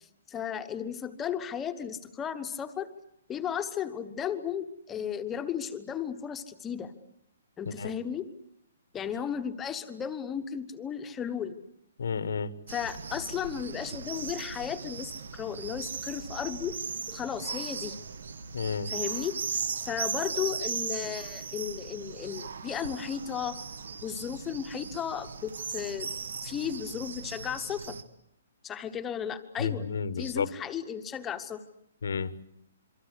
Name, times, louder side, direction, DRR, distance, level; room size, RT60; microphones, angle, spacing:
voice 1, 0.0-2.9 3.3-6.9 7.6-8.3 8.9-11.6 12.7-16.8 17.1-18.0 18.9-19.4 19.8-23.6 24.0-26.1 26.4-28.0 28.6-29.8 30.2-31.6, left 8 dB, 10° left, 9 dB, 1.0 m, -34 dB
voice 2, 12.0-12.5 18.5-18.9 29.6-30.5 32.0-32.3, left 5 dB, 80° left, 15 dB, 1.5 m, -31 dB
sound 1, 12.7-28.0, right 5 dB, 85° right, 1.9 m, -38 dB
27.0 x 24.0 x 8.3 m, 0.76 s
hypercardioid pair, 175°, 0 cm